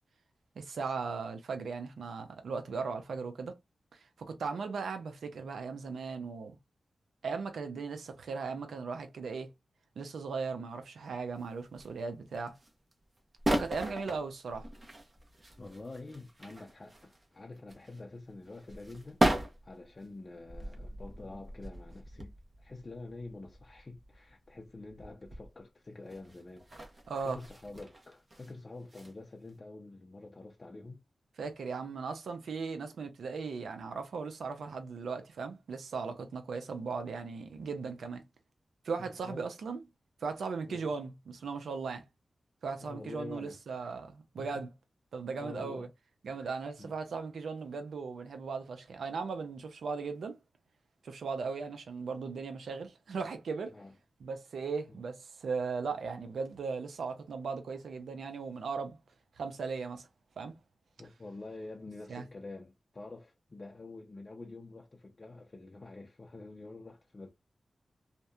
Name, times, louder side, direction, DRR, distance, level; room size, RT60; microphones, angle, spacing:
voice 1, 0.6-3.6 3.9-6.6 7.2-9.5 10.0-12.6 13.5-14.7 27.1-27.4 31.4-38.2 38.8-39.8 40.2-42.0 42.6-44.7 45.1-45.9 46.2-50.4 51.0-53.7 54.2-59.0 59.4-60.1 60.4-60.6 62.1-62.3, right 4 dB, 90° right, 0.5 m, -37 dB
sound 1, 11.4-12.0 12.3-12.9 13.2-17.3 17.6-25.5 26.1-28.5 28.8-29.1 29.5-29.6, right 1 dB, 40° right, 0.8 m, -37 dB
voice 2, 15.6-19.2 19.6-22.3 22.6-26.9 27.2-31.0 39.0-39.5 40.7-40.9 42.8-44.0 44.4-44.7 45.4-45.9 46.3-46.9 53.7-53.9 54.9-55.0 61.0-67.3, left 2 dB, 40° left, 0.5 m, -47 dB
2.7 x 2.2 x 2.3 m
cardioid pair, 60°, 0 cm